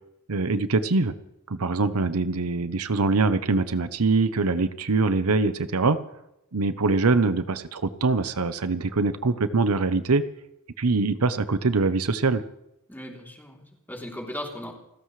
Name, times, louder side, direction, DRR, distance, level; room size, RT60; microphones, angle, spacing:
voice 1, 0.3-1.1 1.5-6.0 6.5-10.2 10.8-12.4, right 3 dB, 85° right, 12 dB, 0.8 m, -23 dB
voice 2, 12.9-14.7, left 1 dB, 10° left, -1 dB, 3.3 m, -37 dB
29.5 x 15.0 x 3.3 m, 0.87 s
head